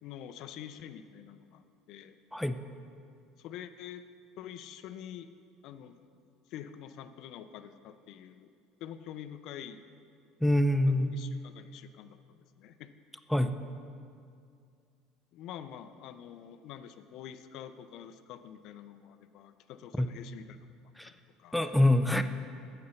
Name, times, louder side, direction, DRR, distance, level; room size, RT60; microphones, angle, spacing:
voice 1, 0.0-1.6 1.9-2.2 3.4-4.0 4.4-5.3 5.6-6.0 6.5-8.5 8.8-9.8 10.9-12.9 15.3-20.7 21.0-21.7, left 10 dB, 65° left, 11 dB, 0.4 m, -46 dB
voice 2, 10.4-11.1 13.3-13.6 20.0-20.1 21.0-21.1 21.5-22.2, left 1 dB, ahead, 8 dB, 0.4 m, -25 dB
6.8 x 6.6 x 7.0 m, 2.3 s
supercardioid pair, 105°, 0 cm